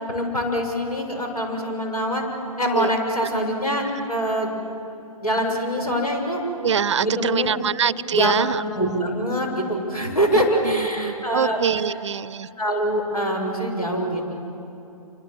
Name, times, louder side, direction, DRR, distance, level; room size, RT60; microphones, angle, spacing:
voice 1, 0.1-2.2 2.6-4.5 5.2-6.4 7.0-7.7 8.1-8.4 8.7-11.6 12.6-14.3, equal, 80° left, 2 dB, 7.0 m, -24 dB
voice 2, 6.6-8.6 10.3-12.5, right 7 dB, 50° right, 21 dB, 0.6 m, -24 dB
27.5 x 26.5 x 7.8 m, 2.8 s
figure-of-eight pair, 130°, 19 cm